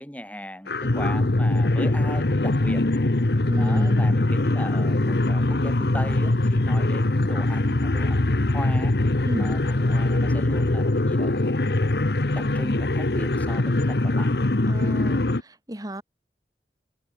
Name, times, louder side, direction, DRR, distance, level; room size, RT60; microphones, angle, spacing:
voice 1, 0.0-2.8 3.6-8.9 9.4-12.0 12.3-14.3, equal, 10° left, 6.1 m, -37 dB
sound 1, 0.7-15.4, left 2 dB, 65° left, 1.1 m, -22 dB
voice 2, 3.5-4.2 9.2-9.5 14.7-16.0, equal, 20° right, 1.6 m, -32 dB
head